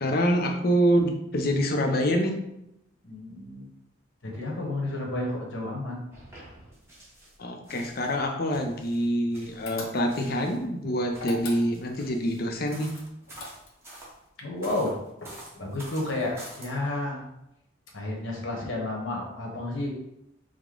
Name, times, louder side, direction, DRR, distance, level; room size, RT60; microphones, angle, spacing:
voice 1, 0.0-2.4 7.4-12.9, equal, 45° left, 4 dB, 0.5 m, -26 dB
voice 2, 3.0-3.6 4.2-6.0 14.4-17.2 17.9-19.9, left 2 dB, 65° left, -1 dB, 1.0 m, -31 dB
sound 1, 6.1-7.4 7.6-10.6 11.1-14.1 14.6-16.7, right 1 dB, 10° right, 0.9 m, -48 dB
sound 2, 9.7-10.3 11.1-12.0 12.9-13.9, left 3 dB, 85° left, 0.8 m, -40 dB
4.9 x 2.1 x 3.7 m, 0.84 s
head